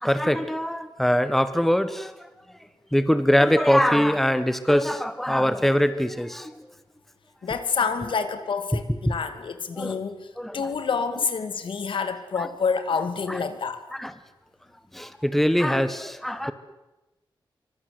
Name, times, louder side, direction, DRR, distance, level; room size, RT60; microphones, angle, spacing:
voice 1, 0.0-2.3 2.9-6.7 8.9-9.1 9.7-10.0 10.4-10.7 12.4-12.5 13.3-13.4 13.9-14.1 14.9-16.5, equal, 5° left, 12 dB, 1.3 m, -23 dB
voice 2, 7.4-10.3 10.5-13.8, left 5 dB, 80° left, 10 dB, 2.5 m, -28 dB
26.0 x 24.5 x 7.9 m, 1.0 s
wide cardioid pair, 130°, 8 cm